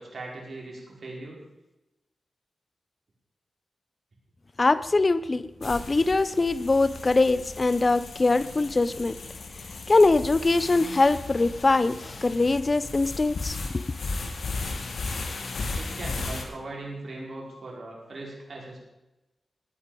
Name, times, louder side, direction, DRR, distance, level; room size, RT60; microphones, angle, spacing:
voice 1, 0.0-1.4 15.7-18.8, right 2 dB, 60° right, -2 dB, 5.3 m, -39 dB
voice 2, 4.6-9.2 9.9-13.8, left 3 dB, 35° left, 15 dB, 0.7 m, -22 dB
sound 1, 5.6-16.4, left 3 dB, 70° left, 2.1 m, -36 dB
18.5 x 9.4 x 5.2 m, 1.0 s
cardioid pair, 70°, 0 cm